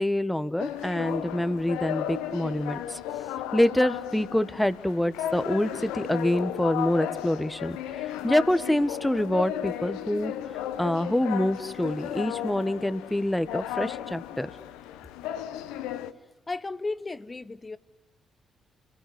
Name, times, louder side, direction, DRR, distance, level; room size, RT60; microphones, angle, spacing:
voice 1, 0.0-3.0 3.5-7.8 8.2-10.3 10.8-14.5, left 1 dB, 5° left, 1.5 m, -26 dB
sound 1, 0.6-16.1, left 11 dB, 80° left, 1.0 m, -35 dB
voice 2, 16.5-17.8, left 3 dB, 30° left, 1.2 m, -34 dB
29.5 x 20.5 x 9.7 m
hypercardioid pair, 50°, 0 cm